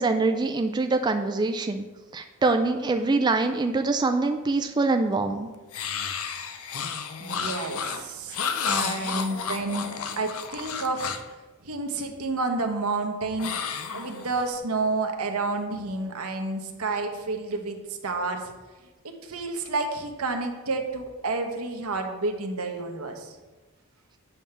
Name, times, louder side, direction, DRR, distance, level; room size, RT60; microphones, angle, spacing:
voice 1, 0.0-1.9 2.1-5.5, right 3 dB, 20° right, 6 dB, 0.3 m, -24 dB
sound 1, 5.7-11.3 13.4-14.6, left 6 dB, 70° left, 0.6 m, -32 dB
voice 2, 7.2-8.4 8.6-9.9 10.2-11.1 11.6-13.5 13.9-18.5 19.2-23.3, right 3 dB, 80° right, 4 dB, 1.1 m, -30 dB
8.4 x 3.5 x 6.7 m, 1.2 s
head